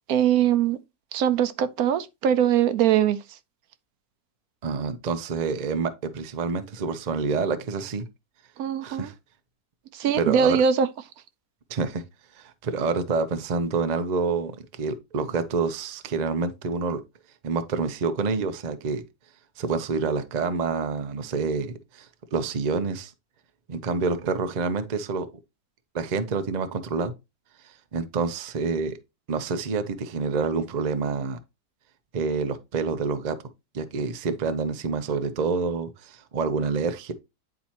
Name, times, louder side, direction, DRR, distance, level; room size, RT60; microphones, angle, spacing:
voice 1, 0.1-0.8 1.1-3.2 8.6-9.1 9.9-10.9, right 9 dB, 75° right, 1.0 m, -21 dB
voice 2, 4.6-8.0 8.8-9.1 10.2-10.6 11.7-12.0 12.3-17.0 17.4-19.0 19.6-23.1 23.7-25.3 25.9-27.1 27.6-29.0 29.3-31.4 32.1-33.4 33.7-37.1, right 4 dB, 45° right, 0.5 m, -27 dB
9.6 x 4.2 x 2.9 m
omnidirectional pair, 1.6 m